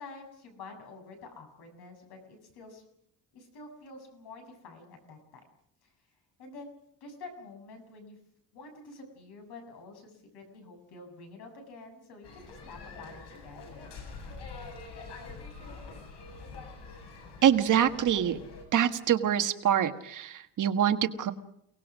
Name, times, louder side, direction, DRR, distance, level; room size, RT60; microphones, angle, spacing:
voice 1, 0.0-2.8 3.3-5.4 5.8-5.9 6.4-6.7 7.0-8.2 8.5-13.9, left 3 dB, 70° left, 5 dB, 7.6 m, -48 dB
sound 1, 12.2-18.6, left 3 dB, 90° left, 7.8 m, -45 dB
voice 2, 17.4-18.4 18.7-21.3, right 9 dB, 50° right, 8 dB, 1.6 m, -25 dB
29.5 x 19.0 x 6.3 m, 0.74 s
cardioid pair, 170°, 40 cm